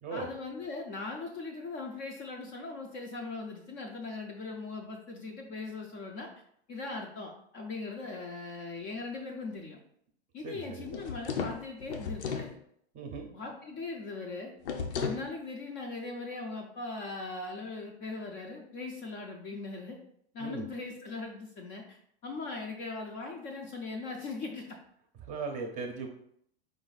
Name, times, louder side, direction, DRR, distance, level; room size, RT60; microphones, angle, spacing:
voice 1, 0.1-6.3 6.7-9.8 10.3-12.6 13.3-14.5 14.9-20.0 20.3-22.0 22.2-24.8, left 3 dB, 25° left, 1 dB, 0.5 m, -39 dB
voice 2, 10.4-10.9 12.9-13.3 20.4-20.7 25.2-26.1, right 4 dB, 25° right, 3 dB, 0.6 m, -38 dB
sound 1, 10.9-12.5 14.6-15.3, left 6 dB, 90° left, 0.8 m, -35 dB
4.8 x 2.6 x 4.0 m, 0.69 s
supercardioid pair, 150°, 33 cm